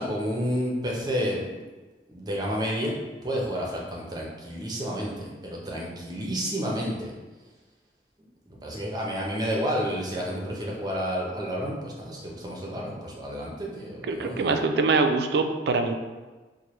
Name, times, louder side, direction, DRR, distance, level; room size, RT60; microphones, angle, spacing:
voice 1, 0.0-1.5 2.1-7.1 8.5-14.6, equal, 25° right, -3 dB, 0.6 m, -30 dB
voice 2, 14.1-15.9, right 3 dB, 65° right, 6 dB, 0.3 m, -24 dB
4.4 x 2.1 x 3.1 m, 1.3 s
head